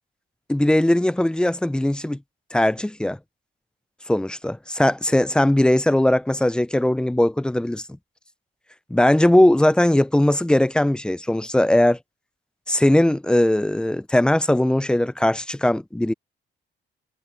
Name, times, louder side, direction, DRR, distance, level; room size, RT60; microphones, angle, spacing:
voice 1, 0.5-2.2 2.5-3.2 4.1-7.8 8.9-12.0 12.7-16.1, left 1 dB, 5° left, 0.5 m, -19 dB
cardioid pair, 90°, 20 cm